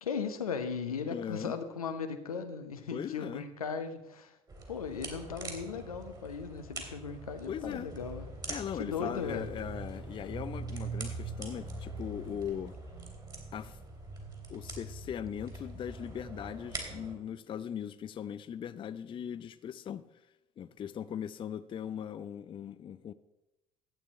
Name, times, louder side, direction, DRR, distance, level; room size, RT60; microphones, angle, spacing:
voice 1, 0.0-4.4 4.7-8.3 8.7-9.5, left 6 dB, 80° left, 0.9 m, -37 dB
voice 2, 1.1-1.6 2.9-3.4 7.5-7.9 8.5-12.8 13.5-13.8 14.5-20.2 20.6-23.1, left 9 dB, 30° left, 0.4 m, -39 dB
sound 1, 4.5-17.1, right 3 dB, 20° right, 2.9 m, -43 dB
11.5 x 8.7 x 4.2 m
figure-of-eight pair, 65°, 18 cm